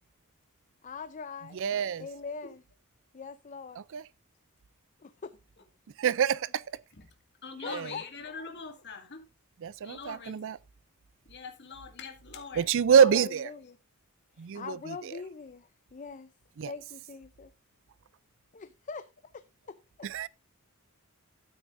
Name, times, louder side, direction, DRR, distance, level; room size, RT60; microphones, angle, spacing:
voice 1, 0.8-1.6 2.0-2.6 3.1-3.8 5.0-5.6 7.6-8.1 8.4-8.5 12.9-13.8 14.4-16.3 16.7-17.5 18.5-19.1 19.3-20.1, left 5 dB, 35° left, 0.5 m, -42 dB
voice 2, 1.5-2.1 3.9-4.0 6.0-6.6 7.7-7.9 9.6-10.6 12.6-13.5 14.4-14.9 16.6-16.7 20.0-20.3, right 7 dB, 60° right, 0.4 m, -25 dB
voice 3, 7.4-9.2 9.8-10.4 11.3-12.7, left 5 dB, 55° left, 2.1 m, -43 dB
12.5 x 9.3 x 2.6 m
head